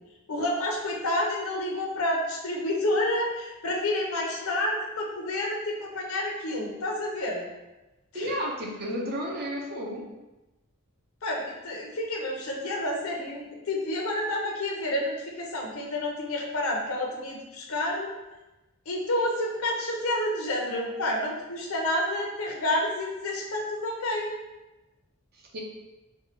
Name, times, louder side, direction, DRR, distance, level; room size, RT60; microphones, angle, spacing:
voice 1, 0.3-7.5 8.1-8.3 11.2-18.1 18.9-24.4, left 1 dB, 75° left, -1 dB, 0.8 m, -29 dB
voice 2, 8.1-10.1 25.5-25.6, equal, 45° right, -1 dB, 0.6 m, -32 dB
4.5 x 2.3 x 2.9 m, 1.0 s
head